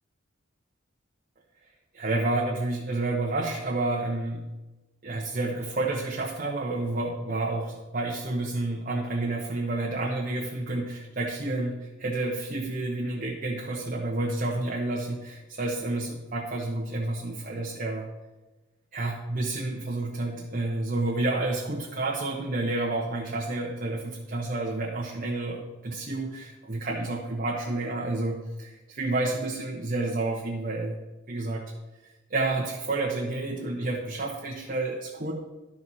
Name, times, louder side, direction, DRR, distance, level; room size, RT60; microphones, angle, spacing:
voice 1, 1.9-4.4 5.0-18.0 18.9-30.9 31.3-31.6 32.3-35.3, right 2 dB, 45° right, -3 dB, 1.0 m, -30 dB
12.0 x 4.2 x 6.1 m, 1.1 s
head